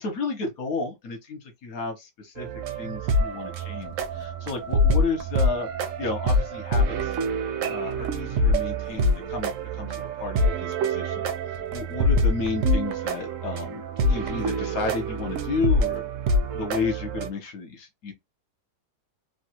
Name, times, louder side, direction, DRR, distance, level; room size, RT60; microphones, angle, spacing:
voice 1, 0.0-2.5 2.8-5.7 6.0-7.2 7.7-16.0 16.5-18.1, left 4 dB, 60° left, 1.2 m, -32 dB
sound 1, 2.4-17.3, equal, 65° right, 0.8 m, -25 dB
3.2 x 2.3 x 2.8 m
omnidirectional pair, 1.9 m